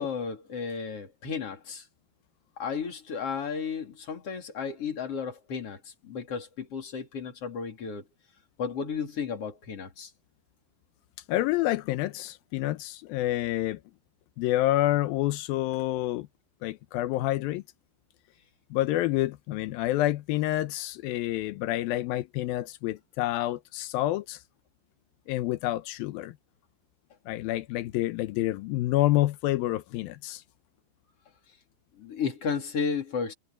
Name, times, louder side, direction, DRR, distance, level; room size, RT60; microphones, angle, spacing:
voice 1, 0.0-1.9 2.6-8.1 8.6-10.1 32.0-33.3, left 6 dB, 45° left, 3.9 m, -33 dB
voice 2, 11.3-13.8 14.4-16.3 16.6-17.6 18.7-24.4 25.3-26.4 27.3-30.4, left 15 dB, 90° left, 2.6 m, -28 dB
omnidirectional pair, 4.1 m